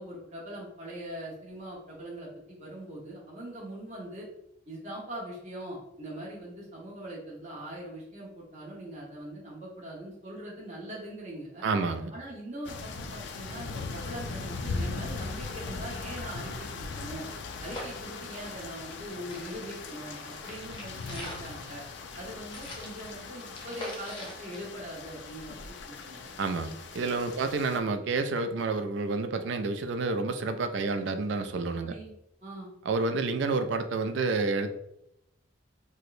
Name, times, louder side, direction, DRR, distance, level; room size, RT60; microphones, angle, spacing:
voice 1, 0.0-4.3 4.7-11.7 12.1-17.3 17.6-21.8 22.1-26.3 27.4-27.5 31.8-32.1 32.4-32.7, right 1 dB, 35° right, -4 dB, 1.0 m, -42 dB
voice 2, 11.6-12.1 26.4-31.9 32.9-34.7, right 3 dB, 65° right, 8 dB, 0.3 m, -29 dB
sound 1, 12.6-27.8, left 4 dB, 65° left, 0.3 m, -39 dB
sound 2, 15.5-15.6 15.9-19.0 19.3-25.4 25.8-25.9, left 1 dB, 25° left, 0.6 m, -45 dB
4.5 x 2.1 x 2.5 m, 0.81 s
head